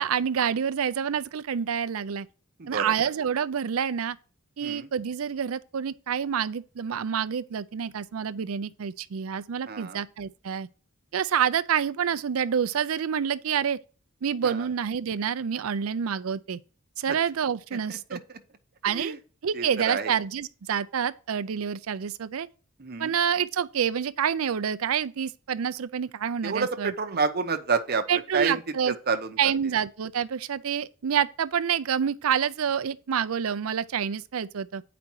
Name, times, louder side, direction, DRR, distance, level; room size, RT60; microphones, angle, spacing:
voice 1, 0.0-2.3 2.7-4.2 4.6-10.7 11.1-13.8 14.2-16.6 17.0-18.2 18.8-19.1 19.4-22.5 23.0-26.9 28.1-28.9 29.4-34.8, right 8 dB, 75° right, 0.5 m, -27 dB
voice 2, 2.6-2.9 4.6-4.9 9.7-10.0 14.4-14.7 17.1-17.2 17.7-18.2 18.9-19.2 19.5-20.1 22.8-23.1 26.4-28.6 28.9-29.5, right 4 dB, 50° right, 0.9 m, -29 dB
8.6 x 5.1 x 4.6 m
head